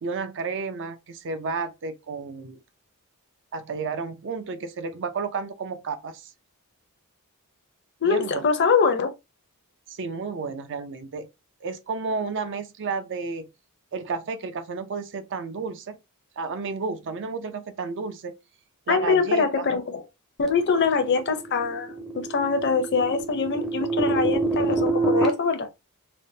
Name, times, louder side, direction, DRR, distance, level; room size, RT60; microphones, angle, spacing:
voice 1, 0.0-2.6 3.5-6.3 8.0-8.5 9.9-11.3 11.6-13.5 13.9-16.0 16.4-18.4 18.9-19.7, right 4 dB, 55° right, 0.5 m, -32 dB
voice 2, 8.0-9.1 18.9-20.0 20.4-25.7, left 5 dB, 50° left, 0.6 m, -23 dB
sound 1, 20.6-25.3, right 3 dB, ahead, 0.5 m, -26 dB
3.4 x 2.1 x 2.7 m
head